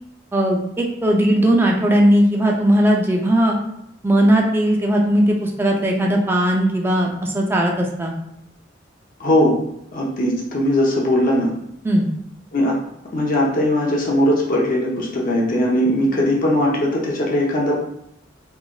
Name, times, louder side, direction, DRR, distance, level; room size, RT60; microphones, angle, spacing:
voice 1, 0.3-3.6 4.0-8.1 11.8-12.1, right 1 dB, 10° right, 0 dB, 0.3 m, -18 dB
voice 2, 9.2-9.6 9.9-11.5 12.5-12.7 13.1-17.7, left 1 dB, 45° left, -3 dB, 0.7 m, -19 dB
3.1 x 2.5 x 2.2 m, 0.79 s
head